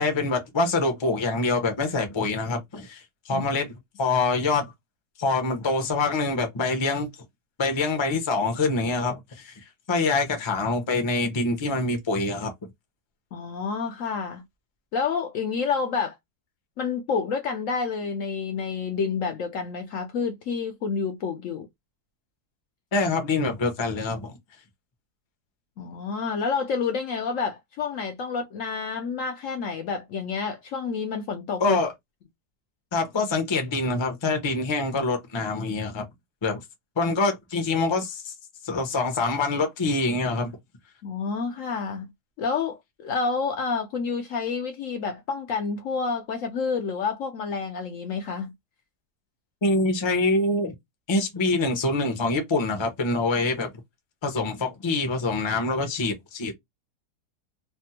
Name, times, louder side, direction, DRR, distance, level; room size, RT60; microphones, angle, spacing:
voice 1, 0.0-4.7 5.2-7.1 7.6-9.5 9.9-12.5 22.9-24.3 31.6-31.9 32.9-36.0 36.4-36.6 37.0-38.3 38.6-40.5 49.6-50.7 51.1-53.7 54.2-56.5, left 3 dB, 30° left, 0.5 m, -25 dB
voice 2, 13.3-14.4 14.9-16.2 16.8-21.7 25.8-31.8 41.0-42.1 42.4-48.5, left 5 dB, 70° left, 0.8 m, -29 dB
3.3 x 2.1 x 2.8 m
omnidirectional pair, 1.7 m